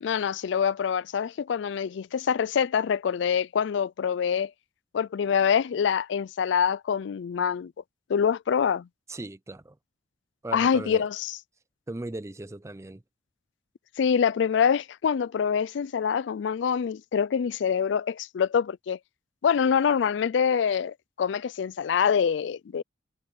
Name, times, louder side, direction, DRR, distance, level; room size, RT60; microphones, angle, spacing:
voice 1, 0.0-4.5 4.9-7.7 8.1-8.9 10.5-11.4 14.0-19.0 19.4-22.8, left 7 dB, 65° left, 0.4 m, -25 dB
voice 2, 9.1-9.8 10.4-11.1 11.9-13.0, right 2 dB, 15° right, 0.5 m, -37 dB
head